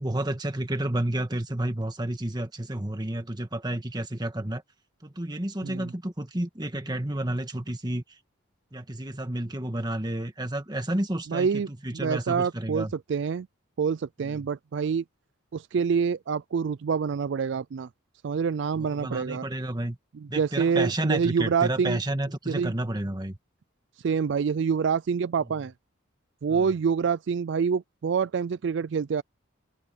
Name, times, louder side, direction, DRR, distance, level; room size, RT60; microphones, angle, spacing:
voice 1, 0.0-4.6 5.0-8.2 8.7-12.9 14.2-14.4 18.8-20.0 20.3-23.4 26.5-26.6, right 1 dB, 20° right, 1.6 m, -31 dB
voice 2, 11.3-13.5 13.8-15.0 15.5-17.9 18.2-19.5 20.1-22.0 22.5-22.7 24.0-25.7 26.4-29.2, right 6 dB, 60° right, 0.4 m, -26 dB
open air
head